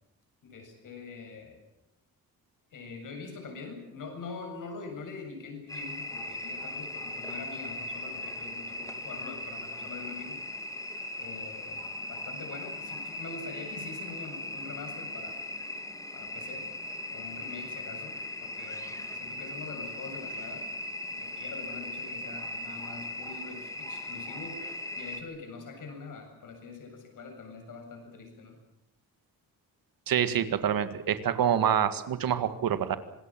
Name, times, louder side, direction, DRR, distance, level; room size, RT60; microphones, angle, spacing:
voice 1, 0.4-1.6 2.7-10.4 11.2-15.4 16.1-16.7 17.1-20.6 21.1-28.6, left 4 dB, 60° left, 4 dB, 7.7 m, -44 dB
sound 1, 5.7-25.2, left 1 dB, 10° left, 2.4 m, -38 dB
voice 2, 30.1-33.0, right 9 dB, 70° right, 11 dB, 2.0 m, -26 dB
26.5 x 20.5 x 7.5 m, 0.79 s
wide cardioid pair, 155°, 35 cm